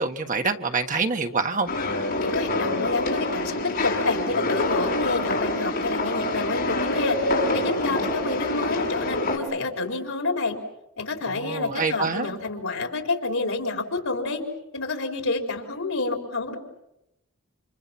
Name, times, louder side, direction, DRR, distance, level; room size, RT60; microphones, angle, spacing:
voice 1, 0.0-1.7 11.3-12.3, right 4 dB, 35° right, 5 dB, 1.5 m, -26 dB
sound 1, 1.7-9.4, left 2 dB, 50° left, 5.8 m, -26 dB
voice 2, 2.2-7.2 7.5-10.6 11.0-14.4 14.7-16.5, left 3 dB, 75° left, 4 dB, 4.4 m, -28 dB
29.5 x 27.0 x 6.1 m, 0.88 s
head